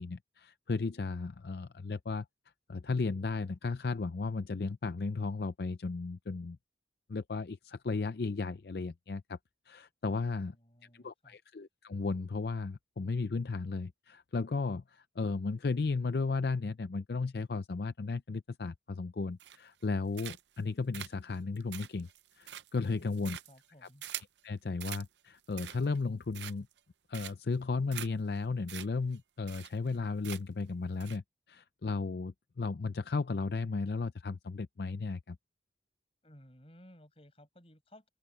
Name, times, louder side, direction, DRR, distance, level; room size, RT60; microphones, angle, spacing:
voice 1, 0.0-2.3 2.7-6.6 7.1-9.4 9.7-10.5 10.9-22.1 22.4-23.4 23.8-23.9 24.4-26.7 27.1-35.4, left 4 dB, 60° left, 0.5 m, -35 dB
voice 2, 10.0-11.4 22.8-24.0 36.2-38.1, equal, 35° left, 7.0 m, -57 dB
sound 1, 19.4-19.8 20.1-20.6 20.9-24.4 24.8-25.1 25.4-26.0 26.3-26.8 27.1-27.5 27.9-28.1 28.4-28.5 28.7-28.9 29.1-29.2 29.5-29.9 30.2-30.6 31.0-31.2, right 12 dB, 80° right, 0.6 m, -44 dB
head